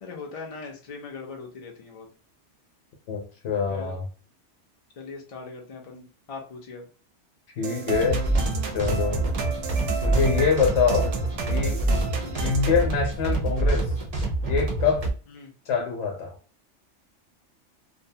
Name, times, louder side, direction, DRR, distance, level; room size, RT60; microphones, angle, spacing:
voice 1, 0.0-2.1 3.7-4.0 5.0-6.9 12.1-12.4 15.3-15.5, left 4 dB, 50° left, 0 dB, 0.4 m, -40 dB
voice 2, 3.1-4.0 7.6-8.3 8.7-9.2 10.0-11.1 11.5-11.8 12.4-13.9 14.4-15.0 15.7-16.3, left 5 dB, 75° left, 2 dB, 0.9 m, -25 dB
sound 1, 7.6-12.8, right 5 dB, 85° right, 0.9 m, -32 dB
sound 2, 8.0-15.1, right 2 dB, 45° right, 0.5 m, -26 dB
2.6 x 2.1 x 2.6 m, 0.37 s
omnidirectional pair, 1.2 m